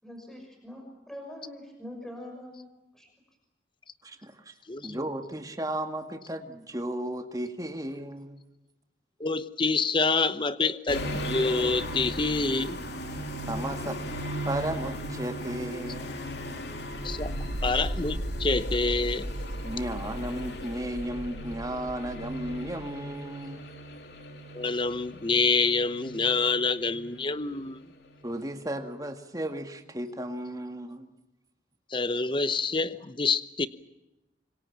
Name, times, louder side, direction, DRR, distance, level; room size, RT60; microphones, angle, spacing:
voice 1, 0.0-2.7 2.9-3.1, left 1 dB, 5° left, 2 dB, 6.0 m, -43 dB
voice 2, 4.0-4.5 4.8-8.4 13.5-14.0 14.5-16.2 19.6-23.6 28.2-31.1, right 1 dB, 20° right, 6 dB, 2.0 m, -34 dB
voice 3, 9.2-12.8 17.0-17.4 17.6-19.2 24.5-27.8 31.9-33.7, left 4 dB, 25° left, 13 dB, 0.9 m, -27 dB
sound 1, 10.9-27.8 28.0-28.2, equal, 60° left, 3.0 m, -38 dB
sound 2, 16.8-22.9, right 1 dB, 80° right, 1.6 m, -36 dB
26.5 x 23.5 x 7.3 m, 0.97 s
head